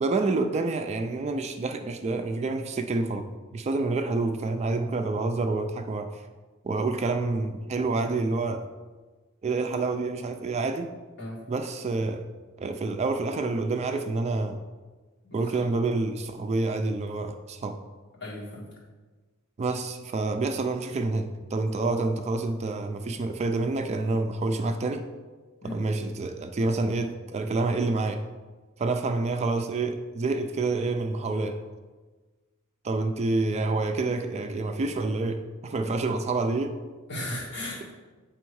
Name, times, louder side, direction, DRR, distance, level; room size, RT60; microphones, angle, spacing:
voice 1, 0.0-3.3 3.5-6.2 6.6-8.7 9.4-10.9 11.5-12.3 12.6-14.6 15.3-17.8 19.6-25.1 25.7-28.2 28.8-31.6 32.8-36.8, right 3 dB, 30° right, 7 dB, 0.3 m, -28 dB
voice 2, 18.2-18.7 25.6-25.8 35.8-35.9 37.1-37.9, left 1 dB, 55° left, -5 dB, 2.0 m, -36 dB
7.9 x 3.5 x 4.6 m, 1.3 s
head